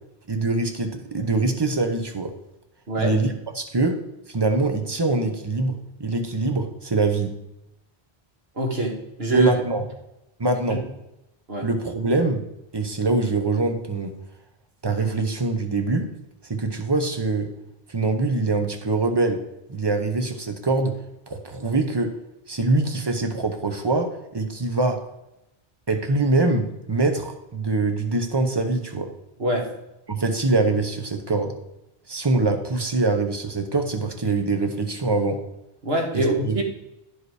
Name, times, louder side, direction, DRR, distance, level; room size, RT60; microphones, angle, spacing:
voice 1, 0.3-2.3 3.0-4.0 4.3-7.4 9.3-9.8 10.4-10.8 11.6-12.4 12.7-14.2 14.8-16.1 16.4-17.5 17.9-19.4 19.7-20.9 21.3-22.1 22.5-25.0 25.9-29.1 30.1-31.5 32.1-35.4 36.1-36.6, right 3 dB, 25° right, 6 dB, 0.8 m, -24 dB
voice 2, 8.6-9.5 10.7-10.8 11.5-11.7 29.4-29.7 35.8-36.6, right 2 dB, 75° right, 0 dB, 1.8 m, -23 dB
9.7 x 5.2 x 4.7 m, 0.88 s
omnidirectional pair, 1.1 m